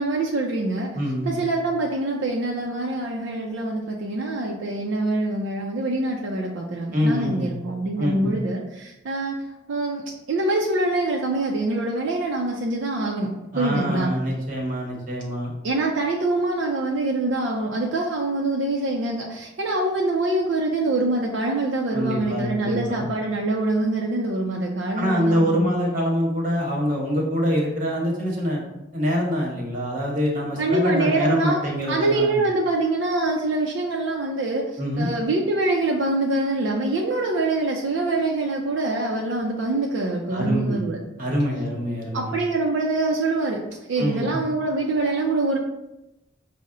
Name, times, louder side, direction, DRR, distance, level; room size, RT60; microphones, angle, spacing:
voice 1, 0.0-0.9 1.3-9.4 9.7-14.1 15.6-25.7 30.6-31.6 31.9-41.0 42.1-43.6 43.9-45.6, right 2 dB, 70° right, -1 dB, 0.5 m, -25 dB
voice 2, 0.9-1.4 6.9-7.5 8.0-8.3 13.5-15.5 21.9-23.0 25.0-28.6 28.9-32.4 34.8-35.1 40.3-40.8 41.2-42.3 44.0-44.3, equal, 45° right, -1 dB, 0.9 m, -25 dB
5.4 x 2.1 x 3.6 m, 0.91 s
head